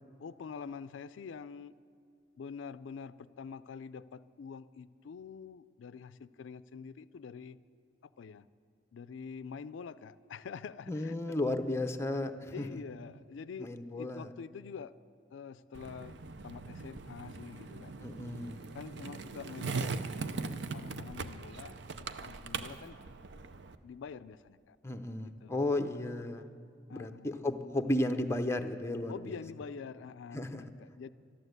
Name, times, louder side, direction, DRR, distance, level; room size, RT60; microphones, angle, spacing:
voice 1, 0.2-1.7 2.4-7.6 8.2-8.5 8.9-11.4 12.5-14.9 15.3-16.2 16.4-18.0 18.7-23.0 23.8-24.8 25.2-26.0 26.9-27.4 29.1-31.1, left 6 dB, 85° left, 15 dB, 0.4 m, -46 dB
voice 2, 10.9-12.8 13.6-14.3 18.0-18.6 24.8-26.5 26.9-29.4 30.3-30.6, left 1 dB, 15° left, 6 dB, 0.6 m, -34 dB
Skateboard, 15.7-23.7, right 4 dB, 65° right, 0.6 m, -40 dB
12.5 x 12.5 x 8.0 m, 2.5 s
head